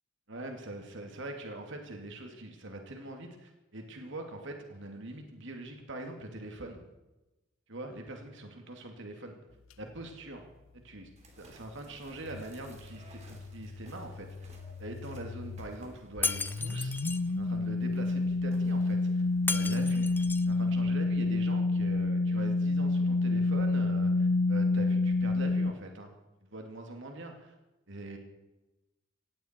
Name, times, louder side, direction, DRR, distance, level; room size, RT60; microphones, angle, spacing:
voice 1, 0.3-6.8 7.7-9.4 9.8-10.5 10.7-11.1 11.4-14.5 14.8-16.9 17.4-19.2 19.5-26.1 26.4-27.5 27.9-28.2, right 1 dB, 65° right, 3 dB, 2.6 m, -43 dB
sound 1, 11.2-20.8, right 1 dB, 35° right, 3.3 m, -58 dB
sound 2, 12.2-15.7 16.2-25.7, left 3 dB, 85° left, 0.8 m, -29 dB
Shatter, 16.2-17.2 19.5-20.5, left 4 dB, 10° left, 0.5 m, -34 dB
18.0 x 16.0 x 4.6 m, 1.0 s
head